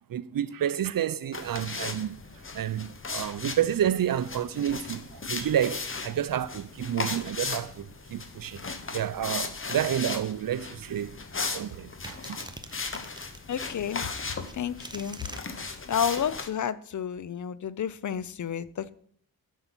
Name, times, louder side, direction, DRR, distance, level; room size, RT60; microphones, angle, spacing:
voice 1, 0.1-2.2 2.5-8.6 8.9-11.2 11.5-12.4, right 10 dB, 65° right, 0.5 m, -30 dB
sound 1, 1.3-16.5, left 4 dB, 35° left, 0.8 m, -37 dB
sound 2, 12.0-13.8 14.4-15.4, right 2 dB, 10° right, 0.5 m, -43 dB
voice 2, 13.5-14.2 14.5-15.3 15.9-18.9, left 8 dB, 50° left, 0.4 m, -31 dB
7.8 x 5.5 x 6.0 m
wide cardioid pair, 105°, 37 cm